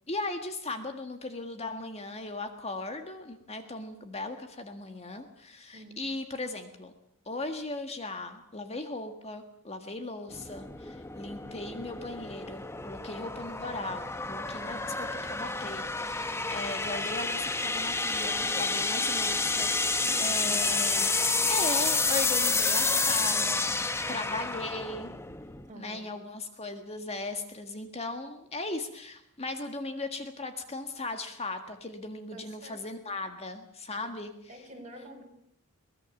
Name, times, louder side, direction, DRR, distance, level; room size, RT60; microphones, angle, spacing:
voice 1, 0.1-6.9 7.2-23.7 24.1-25.1 25.7-34.3, left 2 dB, 30° left, 6 dB, 1.7 m, -38 dB
sound 1, 10.3-25.7, left 3 dB, 10° left, 0.8 m, -30 dB
voice 2, 19.8-20.6 21.1-21.5 24.1-24.4 25.6-26.1 32.3-32.8 34.0-34.1 34.5-35.2, right 1 dB, 35° right, 1 dB, 6.5 m, -48 dB
23.0 x 19.5 x 7.2 m, 0.69 s
head